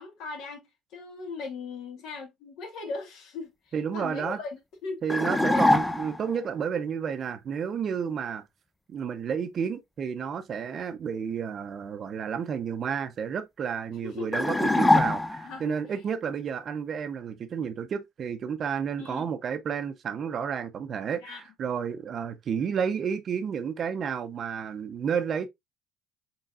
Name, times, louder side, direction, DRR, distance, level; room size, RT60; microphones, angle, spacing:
voice 1, 0.0-5.0 5.5-5.8 14.0-14.5 15.4-15.7 19.0-19.3 21.2-21.4, left 4 dB, 70° left, 1.6 m, -38 dB
voice 2, 3.7-4.4 5.0-8.4 8.9-25.5, right 7 dB, 45° right, 0.6 m, -31 dB
sound 1, 5.1-6.3 14.3-15.6, left 2 dB, 10° left, 0.4 m, -23 dB
4.0 x 3.8 x 2.3 m
cardioid pair, 105°, 0 cm